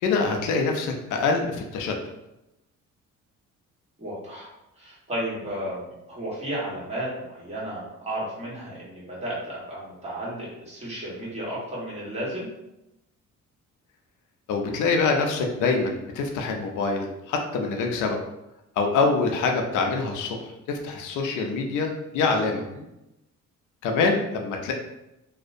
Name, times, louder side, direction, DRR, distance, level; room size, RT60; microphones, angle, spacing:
voice 1, 0.0-2.0 14.5-18.2 18.8-22.6 23.8-24.7, left 4 dB, 80° left, 3 dB, 0.5 m, -25 dB
voice 2, 4.0-12.5 22.5-22.8, right 1 dB, 20° right, -6 dB, 1.2 m, -33 dB
2.4 x 2.0 x 2.5 m, 0.91 s
cardioid pair, 90°, 30 cm